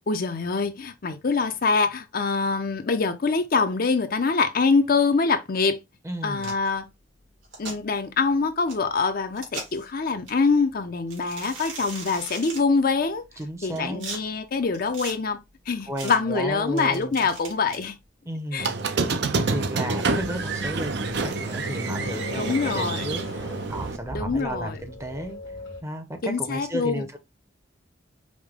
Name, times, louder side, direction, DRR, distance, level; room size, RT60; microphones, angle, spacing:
voice 1, 0.1-5.8 6.2-6.9 7.6-13.3 13.6-15.4 15.7-18.0 18.5-18.7 22.3-23.1 24.1-24.8 26.2-27.0, left 4 dB, 50° left, 0.6 m, -24 dB
voice 2, 6.0-6.5 13.4-14.0 15.9-17.3 18.2-25.4 25.8-27.2, right 1 dB, 15° right, 0.7 m, -33 dB
sound 1, 6.4-6.7 7.4-7.8 8.7-8.8 9.3-9.8 10.3-10.4 11.1-12.6 13.4-14.2 14.7-15.1 16.0-16.2 16.8-17.9, right 3 dB, 90° right, 2.4 m, -38 dB
Squeak, 18.6-24.0, right 4 dB, 60° right, 0.5 m, -28 dB
sound 2, 20.1-25.8, left 1 dB, 85° left, 1.5 m, -39 dB
5.0 x 2.1 x 3.6 m
head